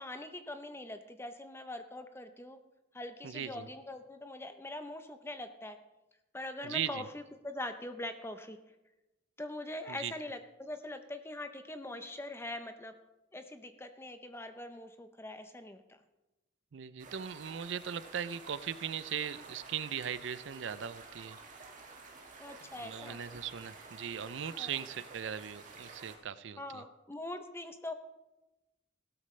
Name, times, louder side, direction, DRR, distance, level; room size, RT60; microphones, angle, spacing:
voice 1, 0.0-2.6 2.9-5.8 6.3-8.6 9.4-12.9 13.3-16.0 22.4-23.2 24.6-24.7 26.6-27.9, left 1 dB, 15° left, 8 dB, 0.7 m, -43 dB
voice 2, 3.2-3.7 6.6-7.0 9.9-10.1 16.7-21.4 22.8-26.8, right 8 dB, 70° right, 15 dB, 0.5 m, -39 dB
sound 1, 17.0-26.1, right 3 dB, 40° right, 1.9 m, -51 dB
16.0 x 12.5 x 3.2 m, 1.0 s
head